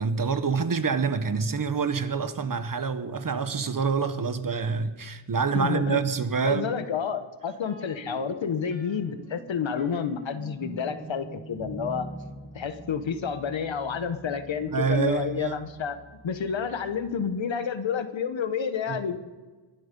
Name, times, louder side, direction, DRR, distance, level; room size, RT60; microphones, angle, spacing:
voice 1, 0.0-6.7 14.7-15.6 18.9-19.2, right 5 dB, 40° right, 1.1 m, -27 dB
voice 2, 5.5-6.0 6.4-12.1 12.5-16.0 16.2-19.2, left 7 dB, 65° left, 1.3 m, -30 dB
sound 1, 7.6-17.4, right 2 dB, 25° right, 2.8 m, -44 dB
22.0 x 8.0 x 5.4 m
cardioid pair, 70°, 49 cm